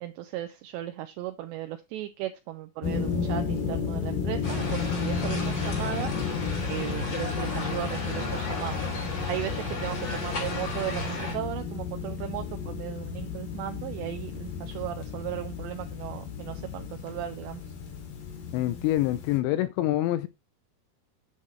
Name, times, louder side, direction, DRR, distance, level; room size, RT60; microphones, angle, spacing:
voice 1, 0.0-6.1 6.6-8.8 9.3-17.6, right 13 dB, 80° right, 2.7 m, -36 dB
sound 1, 2.8-19.4, left 6 dB, 65° left, 3.7 m, -33 dB
sound 2, 4.4-11.3, left 2 dB, 35° left, 4.0 m, -34 dB
voice 2, 18.5-20.3, left 15 dB, 80° left, 2.6 m, -26 dB
9.0 x 7.3 x 3.2 m
omnidirectional pair, 5.4 m